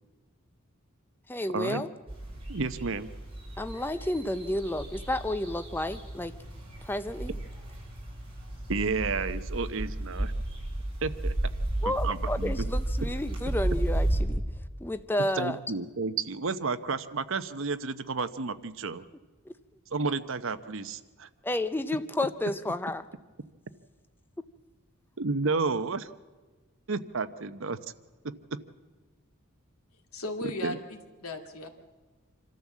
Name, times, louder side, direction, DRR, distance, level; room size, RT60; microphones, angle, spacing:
voice 1, 1.3-1.9 3.6-6.3 6.8-7.4 11.8-14.4 14.8-15.6 21.4-23.0, left 1 dB, 10° left, 11 dB, 0.5 m, -31 dB
sound 1, 2.1-14.2, right 1 dB, 25° right, 7.1 m, -33 dB
voice 2, 2.5-3.1 8.7-10.3 11.0-11.3 11.8-12.7 15.4-19.0 19.9-21.3 25.2-26.1 26.9-27.8 30.6-30.8, right 4 dB, 60° right, 12 dB, 0.8 m, -31 dB
voice 3, 30.1-31.7, left 2 dB, 85° left, 4 dB, 2.4 m, -36 dB
26.5 x 13.5 x 7.3 m, 1.3 s
head